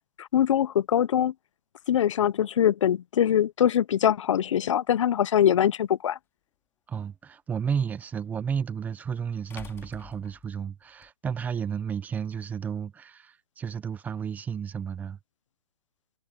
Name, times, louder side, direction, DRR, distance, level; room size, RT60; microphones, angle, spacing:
voice 1, 0.2-1.3 1.9-6.2, left 10 dB, 60° left, 0.8 m, -23 dB
sound 1, 5.7-5.8 8.3-8.4 9.5-11.1, left 8 dB, 15° left, 2.3 m, -47 dB
voice 2, 6.9-15.2, right 7 dB, 10° right, 0.8 m, -32 dB
hypercardioid pair, 155°, 18 cm